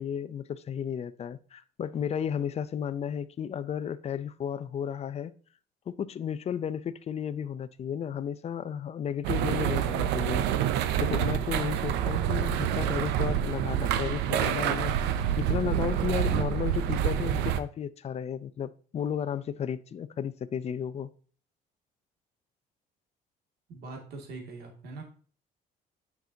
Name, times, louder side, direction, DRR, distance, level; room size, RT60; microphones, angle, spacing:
voice 1, 0.0-5.3 5.9-10.4 11.0-15.0 15.4-21.1, left 8 dB, 40° left, 0.6 m, -33 dB
sound 1, 9.2-17.6, right 10 dB, 90° right, 0.6 m, -27 dB
voice 2, 23.7-25.0, right 3 dB, 70° right, 2.3 m, -42 dB
9.1 x 6.0 x 2.8 m
cardioid pair, 110°, 17 cm